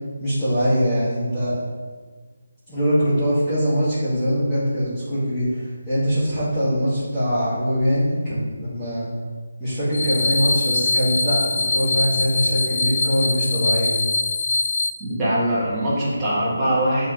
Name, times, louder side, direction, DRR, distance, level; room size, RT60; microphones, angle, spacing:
voice 1, 0.2-1.5 2.7-9.0 9.6-13.9, equal, 10° left, -16 dB, 1.8 m, -22 dB
sound 1, 9.9-14.9, left 3 dB, 55° left, 0.5 m, -23 dB
voice 2, 15.0-17.1, right 1 dB, 10° right, -10 dB, 1.7 m, -22 dB
8.7 x 4.6 x 3.0 m, 1.5 s
figure-of-eight pair, 170°, 0 cm